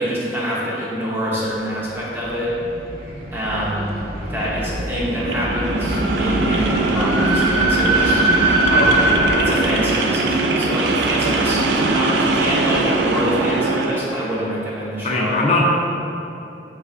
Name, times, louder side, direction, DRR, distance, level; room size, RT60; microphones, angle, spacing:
voice 1, 0.0-2.5 3.3-3.9 4.3-8.2 9.4-15.4, equal, 15° right, -7 dB, 0.6 m, -25 dB
sound 1, 2.0-9.5, right 1 dB, 55° right, 0.8 m, -22 dB
sound 2, 5.2-14.0, right 3 dB, 75° right, 0.3 m, -21 dB
sound 3, 5.7-8.8 9.1-11.6, left 1 dB, 80° left, 0.7 m, -35 dB
voice 2, 8.7-9.6 15.0-15.6, left 2 dB, 40° left, -2 dB, 0.5 m, -21 dB
3.3 x 3.1 x 3.9 m, 2.9 s
head